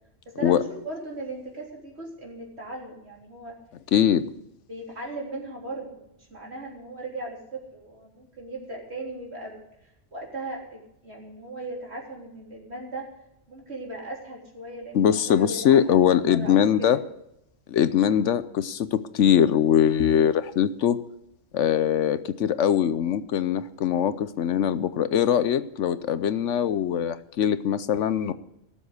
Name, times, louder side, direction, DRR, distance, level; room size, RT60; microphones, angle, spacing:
voice 1, 0.3-3.6 4.7-9.6 10.1-13.1 13.5-17.0, right 2 dB, 55° right, -2 dB, 3.7 m, -38 dB
voice 2, 3.9-4.2 14.9-17.0 17.7-21.0 21.5-28.3, left 9 dB, 70° left, 14 dB, 1.0 m, -22 dB
17.0 x 7.4 x 8.2 m, 0.80 s
omnidirectional pair, 1.3 m